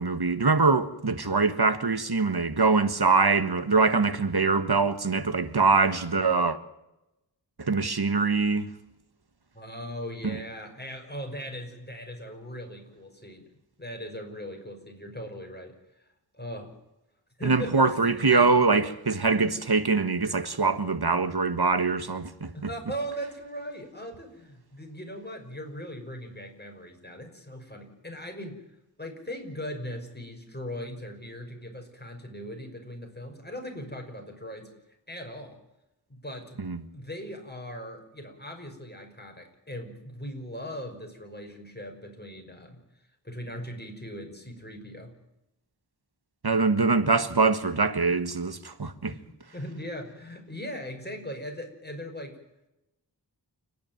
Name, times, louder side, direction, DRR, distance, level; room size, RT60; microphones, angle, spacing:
voice 1, 0.0-6.6 7.6-8.7 10.2-10.4 17.4-22.5 36.6-36.8 46.4-49.1, right 4 dB, 55° right, 1.6 m, -23 dB
voice 2, 9.5-13.5 13.8-15.8 16.3-16.7 17.4-18.5 20.7-20.8 22.5-28.6 29.0-34.7 35.1-35.6 36.1-36.6 36.9-42.8 43.2-45.1 49.0-52.4, equal, 20° left, 5.6 m, -39 dB
29.5 x 10.5 x 9.2 m
wide cardioid pair, 50°, 45 cm